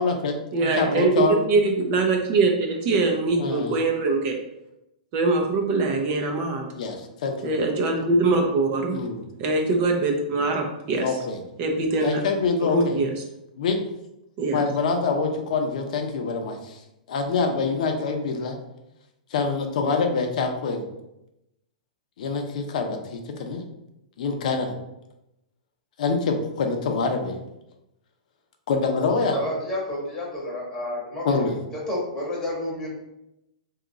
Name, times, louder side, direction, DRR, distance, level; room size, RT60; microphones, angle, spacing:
voice 1, 0.0-1.4 3.4-3.8 6.7-7.5 8.9-9.2 11.0-11.4 12.0-13.0 13.6-13.8 14.5-16.8 17.1-18.6 19.3-20.8 22.2-23.6 24.2-24.7 26.0-27.3 28.7-29.4 31.2-31.5, left 4 dB, 65° left, 4 dB, 0.6 m, -25 dB
voice 2, 0.5-4.4 5.1-6.7 7.4-9.0 9.4-11.0 11.6-12.2 12.7-13.1 14.4-14.6, right 3 dB, 35° right, 2 dB, 0.5 m, -22 dB
voice 3, 29.3-31.3 31.9-32.9, left 1 dB, 10° left, -4 dB, 1.1 m, -30 dB
2.8 x 2.4 x 3.9 m, 0.87 s
hypercardioid pair, 150°, 4 cm